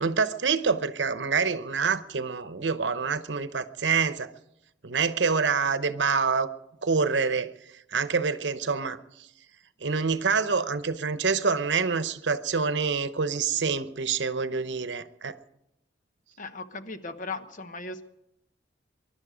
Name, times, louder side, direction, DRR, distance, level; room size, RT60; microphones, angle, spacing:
voice 1, 0.0-4.3 4.8-6.5 6.8-7.5 7.9-9.3 9.8-15.3, right 5 dB, 80° right, 12 dB, 0.9 m, -26 dB
voice 2, 16.4-18.0, left 3 dB, 50° left, 9 dB, 1.1 m, -37 dB
24.5 x 11.5 x 5.1 m, 0.85 s
head